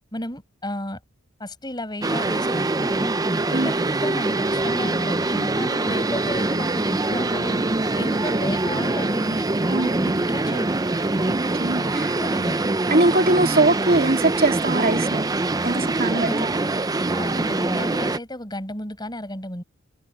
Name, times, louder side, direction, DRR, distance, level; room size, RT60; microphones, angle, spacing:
voice 1, 0.1-1.0 1.4-3.1 3.5-3.8 4.0-7.7 7.9-10.8 11.9-12.7 16.0-16.6 17.1-19.6, left 1 dB, 20° left, 5.7 m, -33 dB
sound 1, 2.0-18.2, right 2 dB, 15° right, 0.5 m, -24 dB
voice 2, 11.2-12.2 12.9-15.3 15.6-16.5, right 2 dB, 40° right, 2.9 m, -22 dB
head